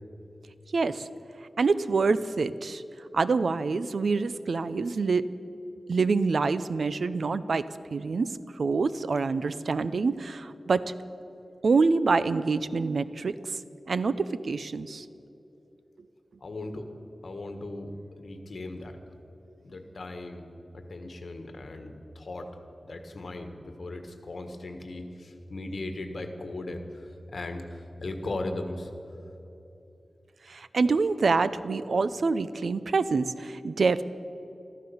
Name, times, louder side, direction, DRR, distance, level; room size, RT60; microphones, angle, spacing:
voice 1, 0.7-1.1 1.6-2.8 3.1-5.3 5.9-7.6 7.9-8.3 8.6-10.8 11.6-13.4 13.9-15.1 30.5-34.0, right 4 dB, 75° right, 14 dB, 0.5 m, -26 dB
voice 2, 16.4-16.9 17.2-19.0 19.6-20.5 20.7-22.5 22.8-28.9, left 2 dB, 65° left, 6 dB, 1.6 m, -38 dB
14.5 x 13.5 x 7.0 m, 3.0 s
wide cardioid pair, 110°, 0 cm